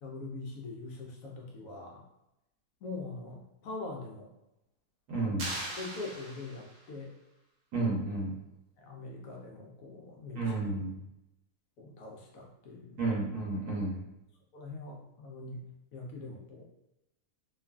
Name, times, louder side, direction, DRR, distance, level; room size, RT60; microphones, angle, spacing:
voice 1, 0.0-2.0 2.8-4.3 5.8-7.1 8.8-10.5 11.8-13.0 14.5-15.6 15.9-16.6, left 3 dB, 70° left, 0 dB, 0.9 m, -43 dB
voice 2, 5.1-5.5 7.7-8.4 10.3-10.9 13.0-14.0, right 2 dB, 85° right, -5 dB, 1.4 m, -31 dB
sound 1, 5.4-6.9, right 1 dB, 50° right, 0.5 m, -40 dB
3.0 x 2.3 x 2.2 m, 0.89 s
omnidirectional pair, 1.6 m